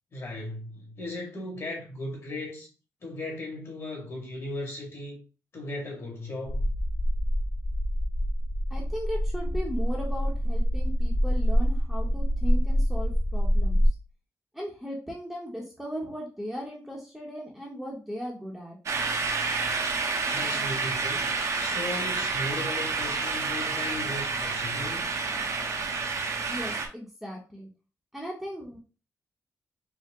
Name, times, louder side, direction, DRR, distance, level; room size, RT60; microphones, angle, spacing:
voice 1, 0.1-2.7 3.0-5.2 5.5-6.7 20.3-21.3 21.6-25.1, left 1 dB, 45° left, 1.9 m, -37 dB
sound 1, 6.5-13.9, equal, 20° left, 0.5 m, -25 dB
voice 2, 8.7-13.8 14.5-18.8 26.5-27.7 28.1-28.8, equal, ahead, 0.8 m, -37 dB
sound 2, 18.9-26.9, right 4 dB, 55° right, 0.8 m, -29 dB
4.6 x 2.1 x 3.5 m
wide cardioid pair, 120°, 6 cm